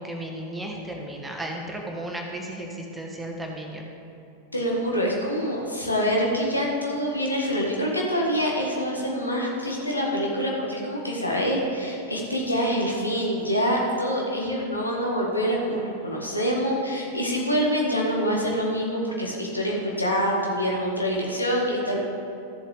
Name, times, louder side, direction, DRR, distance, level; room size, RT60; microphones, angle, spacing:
voice 1, 0.0-3.9, right 1 dB, 10° right, 0 dB, 1.4 m, -34 dB
voice 2, 4.5-22.0, equal, 85° left, -2 dB, 1.8 m, -25 dB
13.5 x 7.3 x 3.5 m, 2.8 s
figure-of-eight pair, 90°, 0 cm